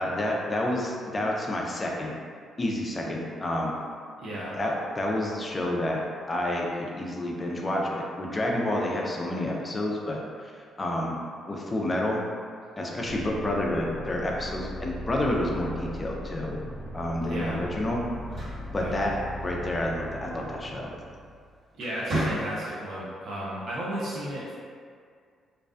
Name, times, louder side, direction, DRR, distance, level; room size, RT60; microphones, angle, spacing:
voice 1, 0.0-2.1 2.6-3.8 4.5-6.0 6.3-10.5 10.8-11.2 11.5-12.2 12.8-16.6 16.9-18.0 18.3-18.4 18.7-19.2 19.4-20.9, left 1 dB, 25° left, -1 dB, 0.4 m, -29 dB
voice 2, 4.2-4.6 17.2-17.6 18.7-19.0 21.8-24.6, right 1 dB, 65° right, -7 dB, 0.5 m, -34 dB
sound 1, 13.1-21.5, equal, 10° left, 1.0 m, -38 dB
sound 2, 18.1-19.6 21.1-21.3 21.7-22.9, right 1 dB, 45° right, 1.4 m, -33 dB
2.5 x 2.1 x 2.4 m, 2.1 s
cardioid pair, 90°, 0 cm